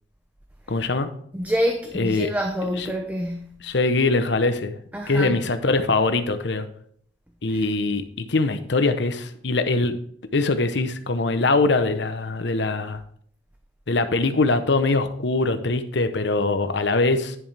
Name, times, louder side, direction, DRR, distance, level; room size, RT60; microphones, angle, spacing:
voice 1, 0.7-1.1 1.9-2.3 2.8-2.9 3.6-4.8 5.1-6.7 7.4-10.0 10.3-13.0 13.9-17.4, left 3 dB, 65° left, 0.8 m, -22 dB
voice 2, 1.3-3.6 4.9-5.4 7.5-7.6, equal, 10° right, 0.6 m, -27 dB
10.0 x 7.2 x 3.4 m
head